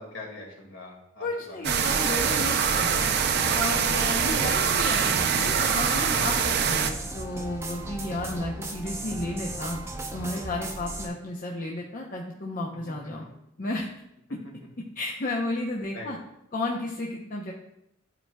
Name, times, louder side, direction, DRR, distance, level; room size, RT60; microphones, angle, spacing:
voice 1, 0.0-1.8 4.3-4.5 12.9-13.0 15.9-16.1, left 2 dB, 65° left, -1 dB, 2.0 m, -42 dB
voice 2, 1.2-3.0 3.5-9.8 10.1-13.2 13.6-13.9 14.3-14.4 15.0-16.2 16.5-17.5, left 2 dB, 45° left, -1 dB, 0.7 m, -33 dB
sound 1, 1.6-6.9, right 7 dB, 55° right, 0.5 m, -24 dB
sound 2, 1.9-11.1, right 2 dB, 15° right, 0.6 m, -36 dB
12.5 x 4.6 x 2.3 m, 0.82 s
head